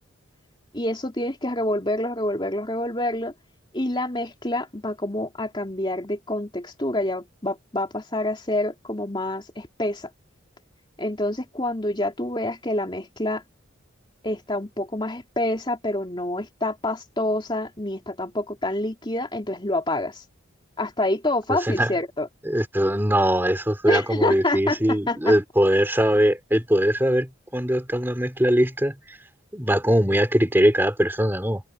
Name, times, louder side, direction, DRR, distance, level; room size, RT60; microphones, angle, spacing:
voice 1, 0.7-3.3 3.7-10.1 11.0-13.4 14.2-20.2 20.8-22.3 23.9-25.4, left 1 dB, 25° left, 3.1 m, -27 dB
voice 2, 22.4-29.2 29.5-31.6, equal, 10° right, 3.3 m, -21 dB
head